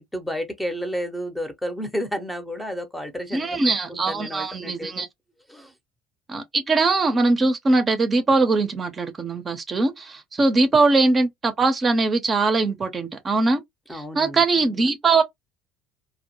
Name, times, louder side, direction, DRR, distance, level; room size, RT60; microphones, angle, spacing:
voice 1, 0.0-5.1 5.5-5.7 10.6-10.7 13.9-14.9, equal, 5° left, 0.7 m, -32 dB
voice 2, 3.3-5.1 6.3-13.6 13.9-15.2, right 3 dB, 35° right, 0.6 m, -21 dB
2.1 x 2.1 x 2.9 m
hypercardioid pair, 70°, 0 cm